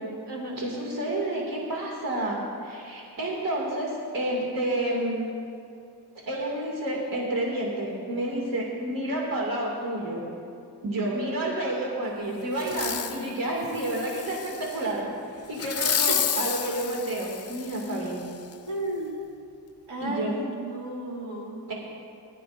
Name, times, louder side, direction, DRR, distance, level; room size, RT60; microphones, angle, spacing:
voice 1, 0.0-0.6 13.8-14.0 16.1-16.2 18.7-19.2 19.9-21.7, right 1 dB, 85° right, -3 dB, 2.4 m, -34 dB
voice 2, 0.6-5.3 6.2-10.2 10.8-15.1 15.5-18.3 20.0-20.3 21.7-21.8, right 1 dB, 55° right, -3 dB, 2.3 m, -30 dB
Fireworks, 12.6-13.2 13.7-14.8 15.6-18.0 18.5-18.6, left 8 dB, 40° left, 0.5 m, -30 dB
20.0 x 12.0 x 2.5 m, 2.5 s
wide cardioid pair, 145°, 41 cm